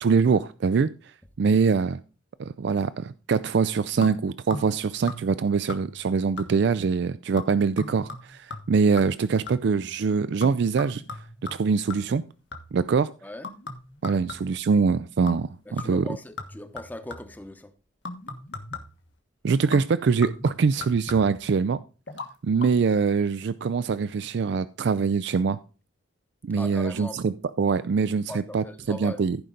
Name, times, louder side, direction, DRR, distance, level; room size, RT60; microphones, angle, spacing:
voice 1, 0.0-2.0 2.4-11.0 11.5-12.2 12.7-13.1 14.0-16.1 19.4-21.8 22.4-25.6 26.4-29.4, right 5 dB, 60° right, 0.4 m, -24 dB
sound 1, 4.0-4.8 5.1-5.4 5.7-6.1 6.4-6.8 7.4-9.8 10.4-12.9 13.4-14.7 15.3-15.5 15.8-17.4 18.1-19.1 19.7-21.5 22.1-22.3 22.6-22.7, left 3 dB, 70° left, 1.5 m, -39 dB
voice 2, 15.7-17.7 26.6-27.2 28.3-29.2, left 1 dB, 10° left, 0.8 m, -39 dB
15.0 x 5.1 x 3.9 m
head